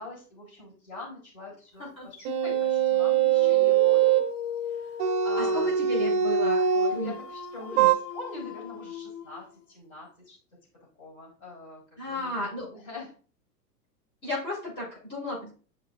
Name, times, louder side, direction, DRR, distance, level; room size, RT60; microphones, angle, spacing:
voice 1, 0.0-4.2 4.6-5.8 6.7-10.4 11.0-13.1, left 2 dB, 55° left, -2 dB, 3.8 m, -44 dB
sound 1, 2.2-4.3 5.0-7.0 7.8-7.9, right 9 dB, 25° right, 0.6 m, -22 dB
Dog, 3.3-9.7, left 6 dB, 40° left, 0.8 m, -38 dB
voice 2, 5.4-7.1 7.6-7.9 12.0-12.7 14.2-15.5, left 1 dB, 85° left, -7 dB, 3.3 m, -34 dB
10.5 x 4.9 x 2.4 m, 0.39 s
figure-of-eight pair, 95°, 49 cm